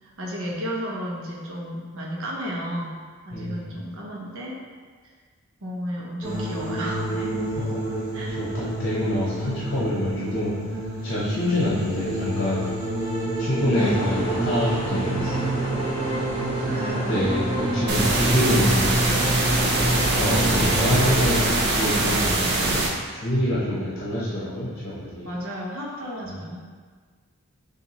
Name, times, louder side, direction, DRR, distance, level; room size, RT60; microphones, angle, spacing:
voice 1, 0.0-3.0 3.2-4.6 5.0-5.1 5.6-7.4 8.1-8.4 9.2-9.3 16.7-17.3 20.1-20.7 25.2-26.7, equal, 70° right, -3 dB, 0.9 m, -33 dB
voice 2, 3.3-3.8 7.5-7.8 8.4-12.7 13.4-15.8 17.1-19.0 20.1-22.8 23.1-25.3 26.3-26.4, left 1 dB, 45° left, -7 dB, 0.9 m, -26 dB
sound 1, 6.2-21.3, right 1 dB, 20° right, 1.2 m, -28 dB
sound 2, 13.7-22.3, equal, 25° left, 1.3 m, -34 dB
sound 3, 17.9-22.9, right 2 dB, 50° right, 0.6 m, -23 dB
6.7 x 2.6 x 2.9 m, 1.5 s
head